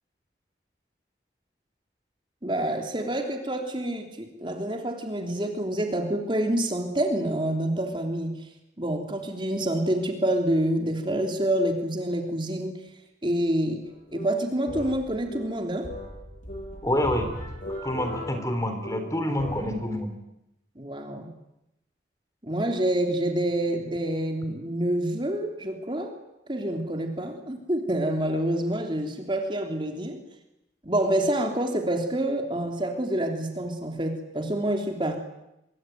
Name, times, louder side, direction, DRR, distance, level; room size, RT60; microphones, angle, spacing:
voice 1, 2.4-8.4 8.8-12.8 13.2-13.8 14.1-15.9 20.7-21.3 22.4-26.1 26.5-30.2 30.8-35.2, right 1 dB, 25° right, 3 dB, 3.4 m, -27 dB
sound 1, 13.8-19.8, left 1 dB, 45° left, 7.6 m, -38 dB
voice 2, 16.8-17.3 17.8-20.1, left 1 dB, 15° left, 7 dB, 3.7 m, -27 dB
26.0 x 23.5 x 9.4 m, 0.87 s
head